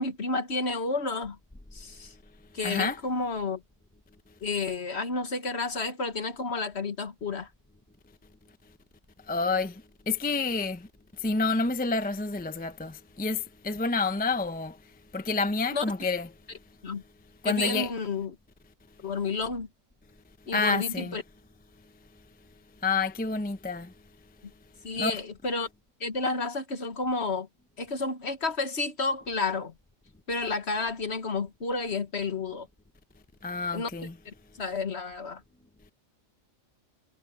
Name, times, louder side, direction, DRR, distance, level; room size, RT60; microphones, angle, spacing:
voice 1, 0.0-1.4 1.7-2.1 2.5-3.6 4.4-7.5 15.7-15.8 16.8-17.0 17.4-18.4 19.0-19.7 20.5-21.2 24.8-25.7 26.0-27.5 27.8-29.7 30.3-32.7 33.7-33.9 34.3-35.4, left 3 dB, 55° left, 1.8 m, -31 dB
voice 2, 2.6-3.0 9.3-10.9 11.2-14.8 15.1-16.3 17.4-17.9 20.5-21.2 22.8-23.9 25.0-25.2 33.4-34.1, left 3 dB, 10° left, 0.7 m, -29 dB
omnidirectional pair, 1.4 m